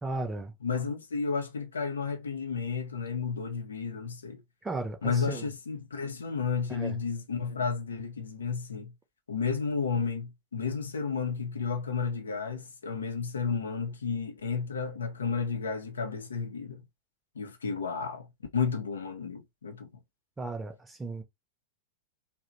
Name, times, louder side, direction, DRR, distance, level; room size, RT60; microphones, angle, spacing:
voice 1, 0.0-0.5 4.6-5.5 6.7-7.0 20.4-21.2, right 2 dB, 10° right, 0.7 m, -35 dB
voice 2, 0.6-4.4 5.0-8.9 9.3-16.8 17.3-18.3 18.5-19.9, left 5 dB, 70° left, 0.5 m, -32 dB
2.8 x 2.0 x 2.6 m
figure-of-eight pair, 90°, 0 cm